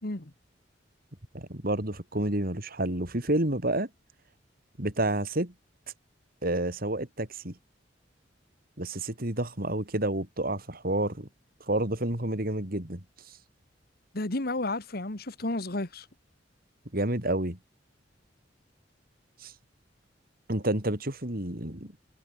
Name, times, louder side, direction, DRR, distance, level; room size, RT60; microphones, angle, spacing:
voice 1, 1.3-3.9 4.8-5.5 6.4-7.5 8.8-11.3 11.7-13.0 16.9-17.6 19.4-19.5 20.5-21.9, right 1 dB, 55° right, 3.7 m, -29 dB
voice 2, 14.1-16.1, left 2 dB, 55° left, 1.9 m, -32 dB
head